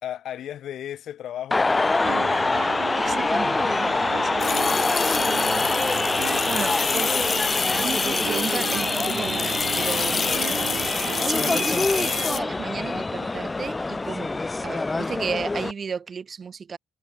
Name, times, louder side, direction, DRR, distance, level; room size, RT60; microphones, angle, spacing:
voice 1, 0.0-2.7 3.7-4.8 7.0-7.4, left 11 dB, 65° left, 2.4 m, -38 dB
sound 1, 1.5-15.7, left 3 dB, 20° left, 0.8 m, -25 dB
sound 2, 1.8-12.3, right 14 dB, 80° right, 1.1 m, -35 dB
voice 2, 3.0-4.4 6.4-7.3 7.8-10.4 11.2-14.3 14.6-16.8, right 6 dB, 40° right, 2.0 m, -33 dB
sound 3, 4.4-12.4, left 6 dB, 40° left, 1.8 m, -29 dB
cardioid pair, 105°, 0 cm